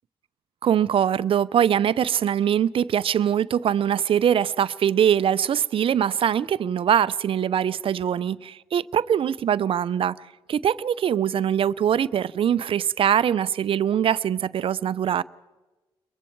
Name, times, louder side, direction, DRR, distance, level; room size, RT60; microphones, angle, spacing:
voice 1, 0.6-15.2, right 9 dB, 60° right, 0.6 m, -22 dB
29.5 x 22.5 x 4.6 m
supercardioid pair, 55°, 11 cm